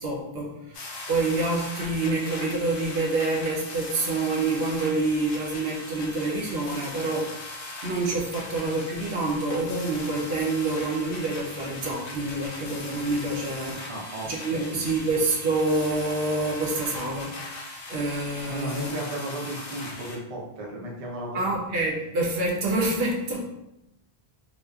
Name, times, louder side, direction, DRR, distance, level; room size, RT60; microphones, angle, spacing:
voice 1, 0.0-7.3 7.8-13.9 14.2-18.9 21.3-23.5, right 2 dB, 75° right, -2 dB, 0.8 m, -27 dB
sound 1, 0.7-20.2, left 2 dB, 65° left, 0.7 m, -39 dB
voice 2, 13.9-14.8 18.4-21.4, right 1 dB, 45° right, -2 dB, 0.5 m, -35 dB
2.7 x 2.1 x 2.3 m, 0.88 s
omnidirectional pair, 1.0 m